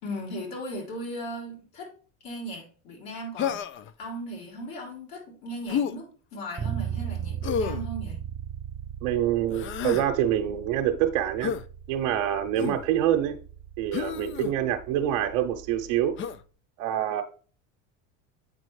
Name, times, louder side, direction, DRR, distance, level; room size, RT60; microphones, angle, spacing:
voice 1, 0.0-1.9 2.2-3.6 4.0-8.2, equal, 65° left, -3 dB, 3.7 m, -37 dB
Human voice, 3.4-3.9 5.7-6.0 7.4-7.9 9.5-10.1 11.4-11.6 12.6-12.9 13.9-14.5 16.2-16.4, left 7 dB, 35° left, 0.4 m, -30 dB
Bass guitar, 6.6-16.4, right 9 dB, 20° right, 0.6 m, -38 dB
voice 2, 9.0-11.5 11.9-13.4 13.8-16.1 16.8-17.2, right 11 dB, 70° right, 3 dB, 0.8 m, -26 dB
8.3 x 4.0 x 3.2 m, 0.40 s
supercardioid pair, 95°, 39 cm